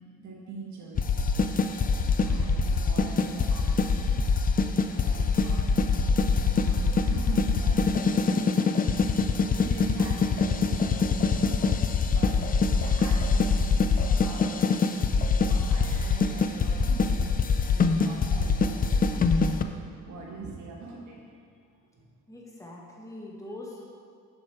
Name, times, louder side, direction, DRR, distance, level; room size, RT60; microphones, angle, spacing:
voice 1, 0.2-1.3 2.2-4.6 4.9-5.9 6.4-11.6 12.0-12.4 12.7-15.0 15.4-19.2 20.0-21.2 21.9-22.1, right 3 dB, 70° right, -2 dB, 1.3 m, -42 dB
sound 1, 1.0-19.6, left 4 dB, 30° left, 0.4 m, -24 dB
voice 2, 22.3-23.9, left 1 dB, 10° left, -3 dB, 1.6 m, -42 dB
7.5 x 5.4 x 4.6 m, 2.2 s
cardioid pair, 90°, 30 cm